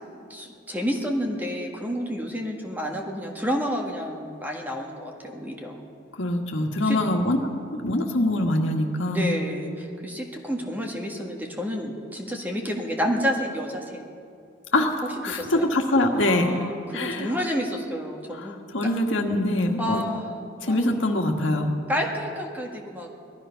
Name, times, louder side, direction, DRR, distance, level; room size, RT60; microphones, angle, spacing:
voice 1, 0.3-5.8 6.8-7.0 9.0-14.0 15.0-15.7 16.1-18.9 19.8-20.3 20.7-21.0 21.9-23.1, equal, 10° right, 1 dB, 1.6 m, -30 dB
voice 2, 6.2-7.4 7.8-9.3 14.7-14.9 15.2-16.5 16.9-17.3 18.4-20.0 20.6-21.7, left 1 dB, 90° left, 2 dB, 1.7 m, -23 dB
19.0 x 13.0 x 5.7 m, 2.4 s
head